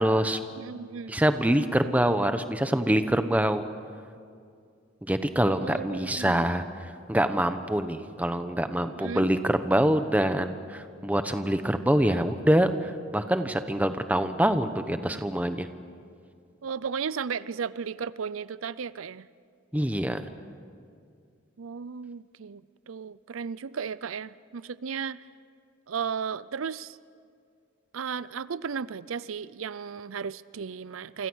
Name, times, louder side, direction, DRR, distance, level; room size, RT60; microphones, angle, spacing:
voice 1, 0.0-0.4 1.1-3.6 5.0-6.6 7.1-15.7 19.7-20.2, right 1 dB, 5° right, 9 dB, 1.0 m, -25 dB
voice 2, 0.6-1.2 5.6-6.5 9.0-9.3 16.6-19.3 21.6-25.2 25.9-27.0 27.9-31.3, right 6 dB, 80° right, 18 dB, 0.5 m, -35 dB
28.5 x 25.0 x 6.4 m, 2.3 s
head